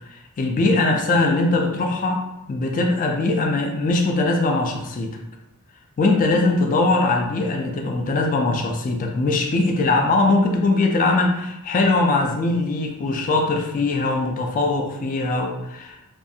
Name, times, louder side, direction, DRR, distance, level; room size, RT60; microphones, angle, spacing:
voice 1, 0.1-5.1 6.0-16.1, left 2 dB, 35° left, 3 dB, 0.3 m, -21 dB
2.5 x 2.3 x 2.6 m, 0.84 s
head